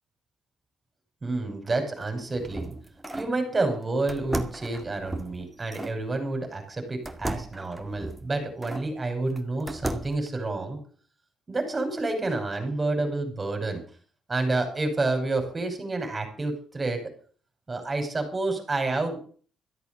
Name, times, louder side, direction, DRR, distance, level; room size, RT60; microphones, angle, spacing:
voice 1, 1.2-2.7 3.1-10.8 11.5-13.8 14.3-17.0 17.7-19.2, right 2 dB, 25° right, 5 dB, 5.5 m, -29 dB
sound 1, 2.0-3.4 4.1-6.0 7.1-8.9 9.4-10.3, right 1 dB, 10° right, 2.1 m, -35 dB
14.0 x 8.3 x 7.8 m, 0.43 s
cardioid pair, 90°, 0 cm